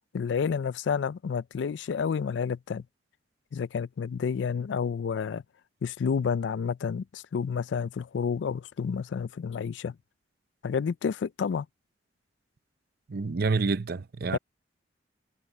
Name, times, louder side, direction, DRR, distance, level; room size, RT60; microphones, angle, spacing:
voice 1, 0.1-2.8 3.5-5.4 5.8-9.9 10.6-11.7 14.3-14.4, left 6 dB, 70° left, 0.4 m, -30 dB
voice 2, 13.1-14.4, right 4 dB, 55° right, 0.6 m, -28 dB
head